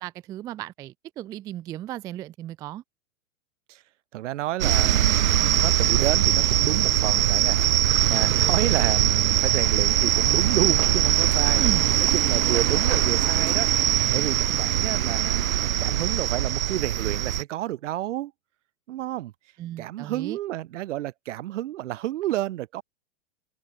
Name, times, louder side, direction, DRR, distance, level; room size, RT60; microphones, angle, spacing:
voice 1, 0.0-2.8 11.5-11.9 19.6-20.4, right 13 dB, 10° right, 0.3 m, -35 dB
voice 2, 4.1-7.6 8.1-11.6 12.1-18.3 18.9-19.3 19.8-22.8, right 14 dB, 65° right, 1.3 m, -30 dB
sound 1, 4.6-17.4, right 11 dB, 85° right, 1.0 m, -22 dB
hypercardioid pair, 120°, 40 cm